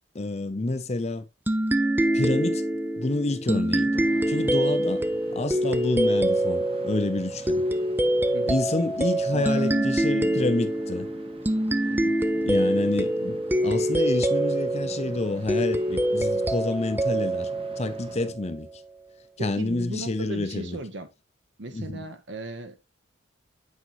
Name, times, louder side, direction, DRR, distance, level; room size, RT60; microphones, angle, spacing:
voice 1, 0.1-1.2 2.1-2.6 3.0-5.1 5.3-7.7 8.5-11.1 12.5-17.5 17.8-18.7 19.4-20.8 21.7-22.0, left 2 dB, 30° left, 0.6 m, -28 dB
sound 1, 1.5-18.6, right 1 dB, 10° right, 0.4 m, -25 dB
sound 2, 3.9-18.3, right 2 dB, 25° right, 0.8 m, -48 dB
voice 2, 9.3-10.5 11.9-12.2 19.4-21.1 21.6-22.8, right 2 dB, 60° right, 1.1 m, -37 dB
8.3 x 5.3 x 3.0 m
head